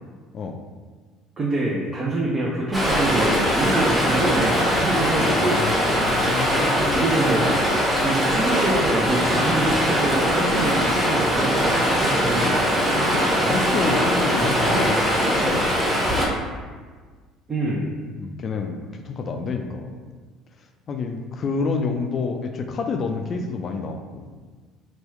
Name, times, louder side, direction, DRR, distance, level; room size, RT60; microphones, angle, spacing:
voice 1, 1.4-5.8 6.9-7.6 8.0-12.9 17.5-17.9 21.6-21.7, right 2 dB, 35° right, -4 dB, 0.5 m, -26 dB
Stream, 2.7-16.3, equal, 10° right, 1.0 m, -21 dB
voice 2, 4.9-7.1 13.2-15.0 15.3-15.7 18.1-19.9 20.9-24.2, left 4 dB, 45° left, 5 dB, 0.3 m, -29 dB
2.9 x 2.2 x 3.1 m, 1.5 s
hypercardioid pair, 60°, 0 cm